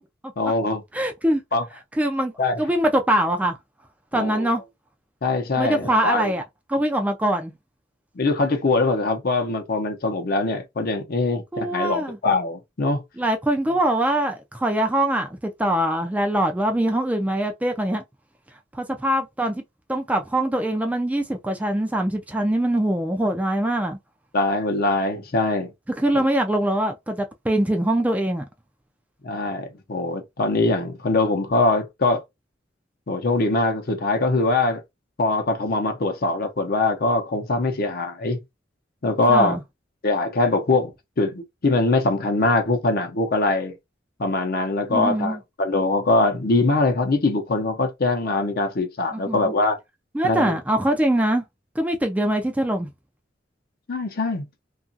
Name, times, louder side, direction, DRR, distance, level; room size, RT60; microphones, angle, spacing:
voice 1, 0.4-0.8 1.5-1.6 2.4-2.6 4.1-4.5 5.2-6.3 8.2-13.0 24.3-25.7 26.1-26.2 29.2-32.2 33.1-34.8 35.2-38.4 39.0-39.6 40.0-43.8 44.2-49.8 50.2-50.6 53.9-54.4, left 2 dB, 55° left, 0.7 m, -22 dB
voice 2, 0.9-1.4 2.0-2.3 2.6-3.5 4.1-4.6 5.6-6.4 6.7-7.5 11.5-12.2 13.2-18.0 18.7-19.6 19.9-24.0 26.0-28.5 39.3-39.6 44.9-45.4 49.1-49.5 50.1-51.4 51.8-52.9, right 1 dB, 10° right, 0.3 m, -23 dB
2.9 x 2.4 x 2.6 m
head